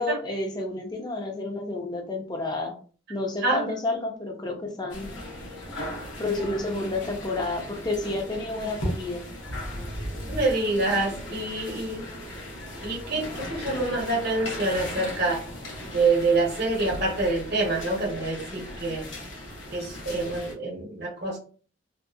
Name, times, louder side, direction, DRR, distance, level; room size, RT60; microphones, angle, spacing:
voice 1, 0.0-2.7 3.1-5.1 6.2-9.2, left 2 dB, 20° left, 2 dB, 0.5 m, -30 dB
voice 2, 3.4-3.8 10.3-12.1 12.8-15.4 15.9-19.0 19.7-21.4, right 2 dB, 55° right, -2 dB, 0.9 m, -26 dB
sound 1, 4.9-20.5, left 1 dB, 70° left, 0.8 m, -37 dB
2.6 x 2.0 x 2.3 m, 0.40 s
head